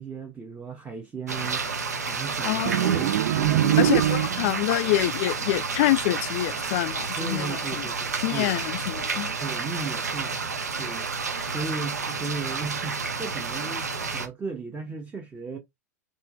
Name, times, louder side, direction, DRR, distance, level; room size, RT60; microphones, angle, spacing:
voice 1, 0.0-2.6 2.9-4.0 7.2-8.5 9.4-10.5 10.8-11.1 11.5-15.6, right 4 dB, 15° right, 0.9 m, -35 dB
sound 1, 1.3-14.3, right 4 dB, 80° right, 0.9 m, -30 dB
voice 2, 2.4-3.0 3.8-7.6 8.2-9.3, left 16 dB, 50° left, 0.4 m, -26 dB
sound 2, 2.6-4.7, right 12 dB, 55° right, 0.4 m, -23 dB
4.3 x 3.1 x 3.5 m
figure-of-eight pair, 95°, 9 cm